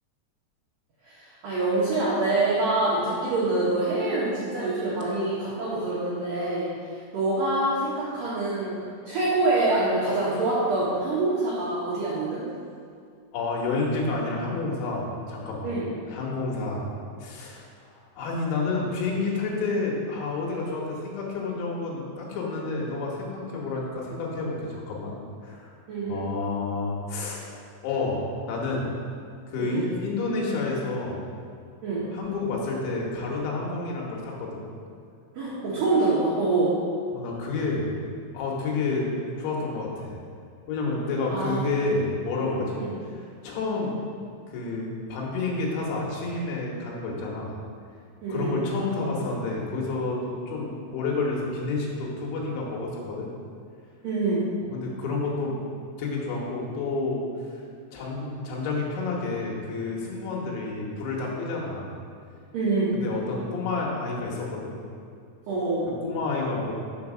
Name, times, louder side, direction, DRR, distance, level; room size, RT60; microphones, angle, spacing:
voice 1, 1.0-8.8 9.1-12.4 15.6-15.9 25.9-26.2 29.6-29.9 31.8-32.1 35.4-36.7 41.3-42.0 42.8-43.0 48.2-48.6 54.0-54.5 62.5-62.9 65.5-65.9, right 2 dB, 75° right, -8 dB, 2.0 m, -26 dB
voice 2, 13.3-15.7 16.1-16.9 17.2-17.7 18.1-25.1 25.4-25.7 26.1-27.4 27.8-28.2 28.5-28.8 29.5-31.3 32.1-34.6 37.1-37.9 38.3-39.1 39.4-40.2 40.7-42.8 43.4-43.9 44.5-47.6 48.3-53.3 54.7-55.6 56.0-57.2 57.9-61.9 62.9-64.7 65.9-66.7, left 3 dB, 70° left, -3 dB, 3.3 m, -29 dB
7.2 x 4.6 x 6.0 m, 2.3 s
omnidirectional pair, 5.8 m